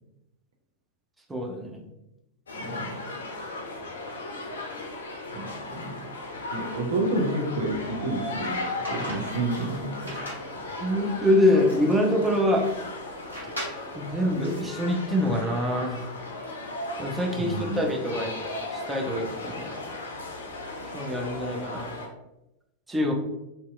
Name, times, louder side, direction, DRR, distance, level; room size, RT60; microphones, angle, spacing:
voice 1, 1.3-1.8 10.8-12.6 13.4-13.5 13.9-16.0 17.0-18.4 18.7-20.0 20.9-21.9 22.9-23.1, left 1 dB, 10° right, 0 dB, 0.5 m, -25 dB
sound 1, 2.5-22.1, left 2 dB, 65° left, 0.4 m, -36 dB
voice 2, 2.5-3.1 5.3-6.0 6.5-10.3 17.4-17.8, right 2 dB, 60° right, 1 dB, 0.5 m, -30 dB
sound 2, 8.8-14.6, right 1 dB, 80° right, 1.0 m, -40 dB
2.7 x 2.1 x 2.4 m, 0.91 s
figure-of-eight pair, 90°, 0 cm